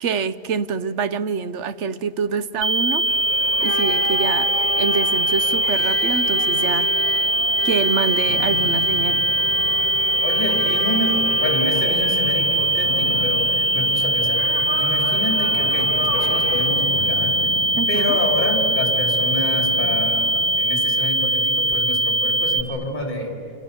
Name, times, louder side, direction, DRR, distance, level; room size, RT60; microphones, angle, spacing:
voice 1, 0.0-3.0 3.6-4.5 4.8-7.1 7.6-9.3 17.8-18.2, right 5 dB, 60° right, 1.0 m, -26 dB
sound 1, 2.6-22.6, right 1 dB, 35° right, 0.6 m, -21 dB
sound 2, 3.0-16.7, equal, 75° right, 3.6 m, -33 dB
sound 3, 8.3-20.6, left 6 dB, 60° left, 1.7 m, -36 dB
voice 2, 10.2-17.3 17.9-20.3 20.6-23.4, left 2 dB, 30° left, 3.9 m, -28 dB
29.5 x 27.5 x 7.1 m
omnidirectional pair, 1.6 m